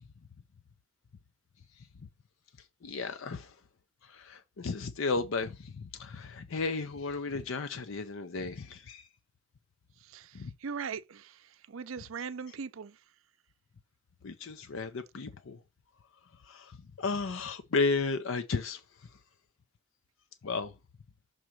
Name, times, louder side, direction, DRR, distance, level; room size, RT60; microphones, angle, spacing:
voice 1, 2.8-3.5 4.1-9.0 10.3-10.5 14.2-15.6 16.5-16.7 17.0-18.8 20.4-20.7, left 4 dB, 70° left, 0.5 m, -33 dB
voice 2, 10.6-11.3 11.7-12.9, right 6 dB, 75° right, 0.5 m, -39 dB
6.3 x 3.7 x 4.4 m
head